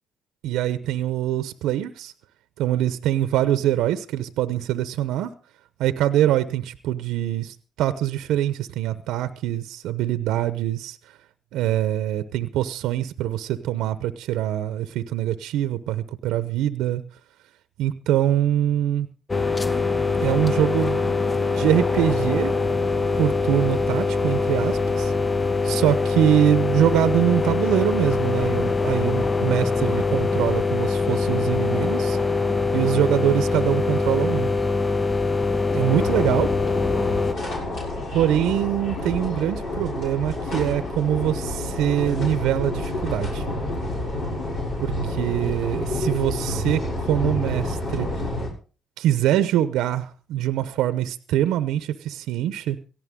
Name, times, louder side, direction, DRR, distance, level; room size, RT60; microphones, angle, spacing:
voice 1, 0.4-2.1 2.6-5.3 5.8-11.0 11.5-17.0 17.8-19.1 20.2-21.2 21.5-22.5 23.2-25.1 25.6-32.2 32.7-34.5 35.7-36.5 38.1-43.5 44.8-48.1 49.0-52.8, right 12 dB, 75° right, 12 dB, 0.8 m, -24 dB
sound 1, 19.3-37.3, left 4 dB, 25° left, 0.8 m, -23 dB
sound 2, 36.0-48.5, left 1 dB, 60° left, 7.1 m, -29 dB
17.5 x 14.5 x 3.7 m, 0.38 s
supercardioid pair, 60°, 0 cm